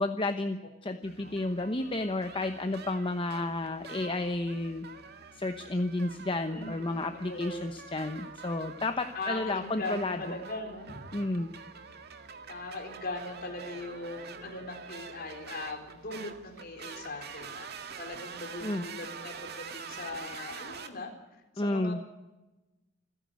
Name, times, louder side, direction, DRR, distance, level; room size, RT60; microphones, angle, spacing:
voice 1, 0.0-4.9 5.3-10.3 11.1-11.5 18.6-18.8 21.6-22.0, left 2 dB, 25° left, 7 dB, 1.0 m, -32 dB
sound 1, 1.0-20.9, right 5 dB, 55° right, 1.9 m, -46 dB
voice 2, 6.5-7.7 9.1-11.0 12.5-17.7 18.0-21.1 21.5-22.1, left 2 dB, 50° left, 3 dB, 4.2 m, -40 dB
28.5 x 10.5 x 9.5 m, 1.0 s
head